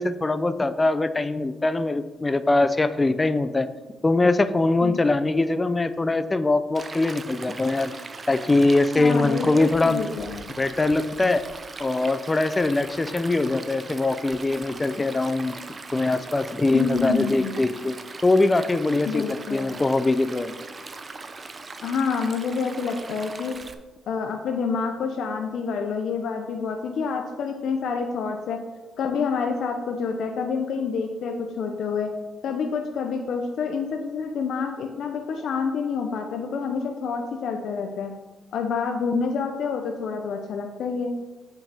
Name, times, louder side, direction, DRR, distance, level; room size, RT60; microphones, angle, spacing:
voice 1, 0.0-3.7 4.0-7.9 8.3-10.0 10.6-11.4 11.8-15.5 15.9-18.0 18.2-20.5, left 2 dB, 20° left, 12 dB, 0.5 m, -22 dB
Stream, 6.7-23.7, right 3 dB, 35° right, 0.6 m, -40 dB
voice 2, 9.0-10.5 16.7-17.5 19.1-19.8 21.8-23.6 24.1-28.6 29.0-32.1 32.4-38.1 38.5-41.1, left 5 dB, 70° left, 4 dB, 0.6 m, -28 dB
8.1 x 5.6 x 3.4 m, 1.2 s
cardioid pair, 90°, 0 cm